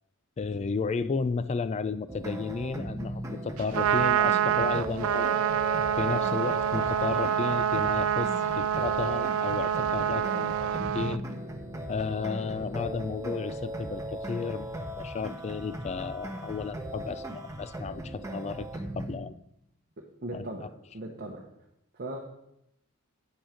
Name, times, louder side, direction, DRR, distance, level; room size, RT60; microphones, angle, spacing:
voice 1, 0.4-5.4 6.0-11.2 11.9-18.7 18.9-19.4 20.3-20.5, left 4 dB, 30° left, 14 dB, 0.3 m, -33 dB
sound 1, 2.1-19.1, right 1 dB, 15° right, 1.0 m, -38 dB
Trumpet, 3.6-11.2, right 9 dB, 75° right, 0.4 m, -27 dB
voice 2, 20.0-20.7 20.9-21.5 21.9-22.2, right 1 dB, 50° right, 0 dB, 1.0 m, -38 dB
9.5 x 6.2 x 5.1 m, 0.80 s
head